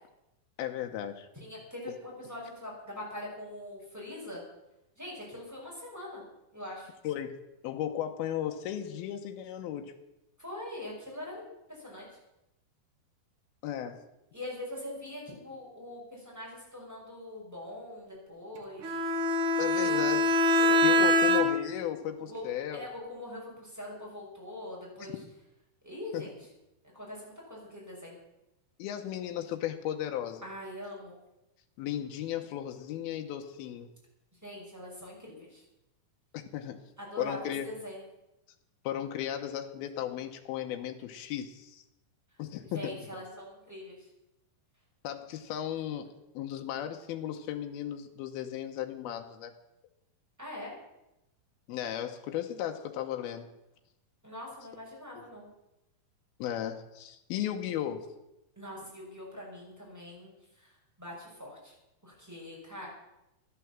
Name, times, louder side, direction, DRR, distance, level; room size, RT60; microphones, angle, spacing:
voice 1, 0.6-1.3 7.0-7.4 7.6-9.9 13.6-14.0 19.6-20.3 20.8-22.9 25.0-25.1 26.1-26.2 28.8-30.4 31.8-33.9 36.3-36.8 37.2-37.7 38.8-41.8 42.4-43.0 45.0-49.5 51.7-53.5 55.2-55.3 56.4-58.1, left 11 dB, 85° left, 4 dB, 2.9 m, -35 dB
voice 2, 1.3-4.4 5.0-6.2 6.5-6.9 10.4-12.2 14.3-19.0 19.7-20.2 20.6-21.3 22.2-22.4 22.7-25.2 25.8-26.4 26.9-28.2 30.4-31.2 34.4-35.6 37.0-38.0 42.6-44.1 50.4-50.7 54.2-55.5 58.6-61.7 62.0-62.9, left 1 dB, 5° right, -4 dB, 5.4 m, -43 dB
Bowed string instrument, 18.8-21.8, left 1 dB, 75° right, 1.1 m, -24 dB
13.0 x 11.5 x 7.4 m, 0.91 s
omnidirectional pair, 4.3 m